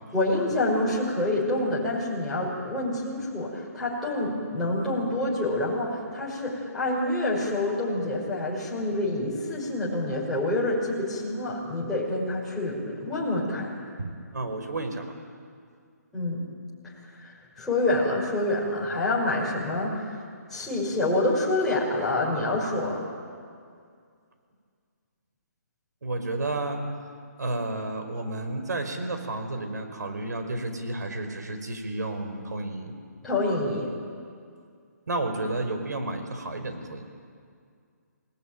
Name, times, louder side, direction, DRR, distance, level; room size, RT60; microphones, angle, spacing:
voice 1, 0.1-13.7 16.1-16.4 16.8-16.9 17.2-20.2 20.5-23.1 33.2-33.9, left 2 dB, 5° left, -8 dB, 5.7 m, -27 dB
voice 2, 14.0-15.1 26.0-26.8 27.4-32.9 35.1-37.0, right 2 dB, 80° right, 6 dB, 5.1 m, -31 dB
28.5 x 19.5 x 9.2 m, 2.2 s
hypercardioid pair, 170°, 9 cm